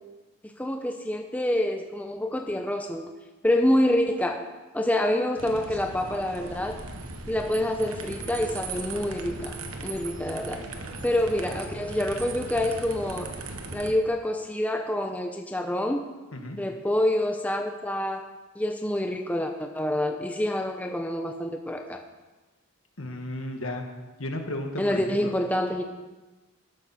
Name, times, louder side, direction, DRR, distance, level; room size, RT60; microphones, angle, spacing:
voice 1, 0.6-3.1 3.4-4.5 4.7-6.8 7.3-9.6 9.8-10.6 11.0-13.3 13.7-16.1 16.6-22.0 24.8-25.8, left 1 dB, 5° left, 4 dB, 0.6 m, -27 dB
sound 1, 5.4-13.9, right 3 dB, 85° right, 1.4 m, -38 dB
voice 2, 23.0-23.8 24.2-25.3, left 1 dB, 70° left, 4 dB, 1.7 m, -34 dB
13.5 x 12.0 x 4.2 m, 1.2 s
head